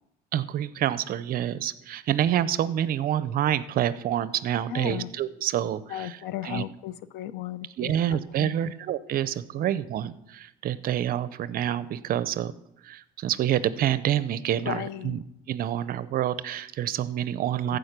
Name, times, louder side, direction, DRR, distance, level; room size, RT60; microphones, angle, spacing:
voice 1, 0.3-6.2 6.4-6.6 7.8-12.5 12.8-15.2 15.5-17.8, right 11 dB, 60° right, 16 dB, 0.6 m, -27 dB
voice 2, 4.7-5.1 5.9-8.7 9.6-9.7 14.6-15.2 17.6-17.8, left 12 dB, 90° left, 16 dB, 0.6 m, -36 dB
14.5 x 5.0 x 5.9 m, 0.81 s
cardioid pair, 110°, 17 cm